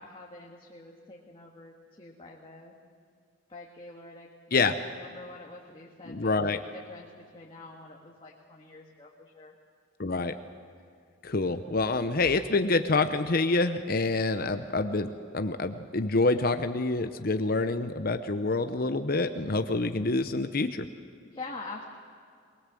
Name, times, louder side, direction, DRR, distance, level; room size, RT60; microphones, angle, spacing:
voice 1, 0.0-2.8 3.5-9.5 21.2-21.8, left 3 dB, 25° left, -2 dB, 1.9 m, -46 dB
voice 2, 6.1-6.6 10.0-10.3 11.2-20.9, left 3 dB, 50° left, 9 dB, 0.8 m, -27 dB
22.5 x 21.5 x 7.7 m, 2.3 s
head